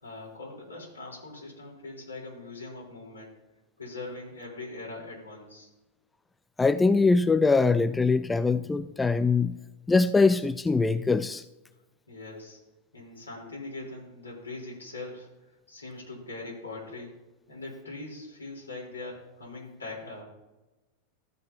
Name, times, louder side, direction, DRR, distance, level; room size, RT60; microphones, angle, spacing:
voice 1, 0.0-3.3 3.8-5.7 12.1-12.6 12.9-15.3 15.7-17.2 17.5-20.2, left 2 dB, 80° left, 3.8 m, -41 dB
voice 2, 6.6-9.6 9.9-11.4, left 3 dB, 10° left, 0.3 m, -22 dB
14.0 x 7.3 x 2.8 m
figure-of-eight pair, 90°, 0 cm